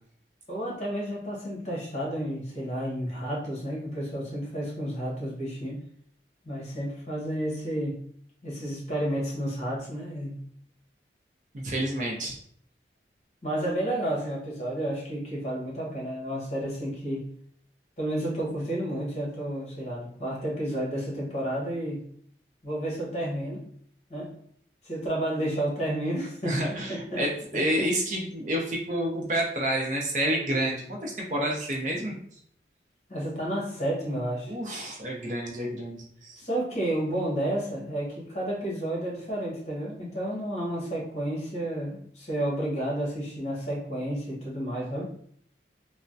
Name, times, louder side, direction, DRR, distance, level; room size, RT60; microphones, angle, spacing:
voice 1, 0.5-5.8 6.4-8.0 8.4-10.4 13.4-17.3 18.0-22.0 22.6-23.6 24.1-24.3 24.8-26.6 26.9-27.2 27.5-27.6 33.1-34.5 36.4-45.1, right 1 dB, 40° left, -4 dB, 1.1 m, -31 dB
voice 2, 11.5-12.4 26.4-32.2 34.5-36.4, right 1 dB, 45° right, -1 dB, 0.6 m, -29 dB
3.3 x 2.1 x 2.6 m, 0.63 s
head